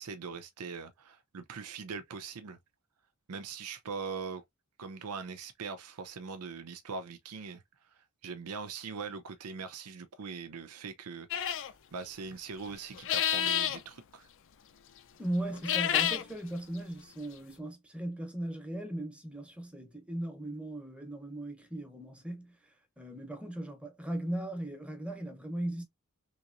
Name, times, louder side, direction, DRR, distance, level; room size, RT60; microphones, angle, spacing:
voice 1, 0.0-2.6 3.3-4.4 4.8-7.6 8.2-14.3, right 5 dB, 85° right, 0.6 m, -41 dB
sound 1, 11.3-11.7 12.9-13.8 15.5-16.2, left 10 dB, 60° left, 0.5 m, -29 dB
voice 2, 15.2-22.5 23.0-25.8, right 1 dB, 5° right, 0.9 m, -38 dB
3.5 x 3.0 x 2.5 m
head